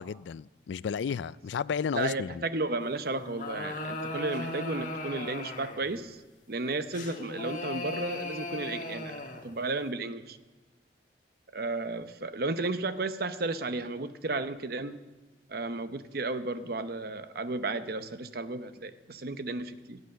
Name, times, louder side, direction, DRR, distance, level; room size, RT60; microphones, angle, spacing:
voice 1, 0.0-2.4, left 6 dB, 85° left, 20 dB, 0.3 m, -33 dB
voice 2, 1.9-6.2 6.5-9.2 9.4-10.4 11.5-15.0 15.5-20.0, right 2 dB, 55° right, 11 dB, 0.8 m, -33 dB
sound 1, 3.1-5.9 6.9-9.5, left 2 dB, 45° left, 1.6 m, -37 dB
16.5 x 8.1 x 7.6 m, 1.3 s
head